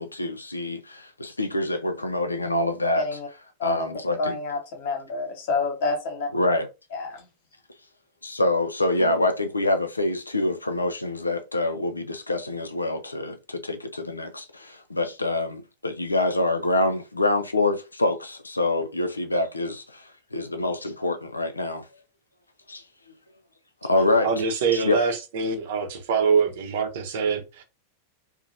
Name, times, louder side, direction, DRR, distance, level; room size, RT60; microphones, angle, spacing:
voice 1, 0.0-3.2 3.6-4.4 6.3-6.7 8.2-21.8 22.7-22.8 23.8-24.3 24.8-25.0, left 2 dB, 80° left, 0.4 m, -26 dB
voice 2, 2.9-3.3 3.6-3.9 4.2-6.3 6.9-7.2, left 3 dB, 50° left, 1.0 m, -28 dB
voice 3, 24.2-27.6, right 5 dB, 55° right, 0.7 m, -24 dB
2.8 x 2.1 x 2.6 m
figure-of-eight pair, 90°, 0 cm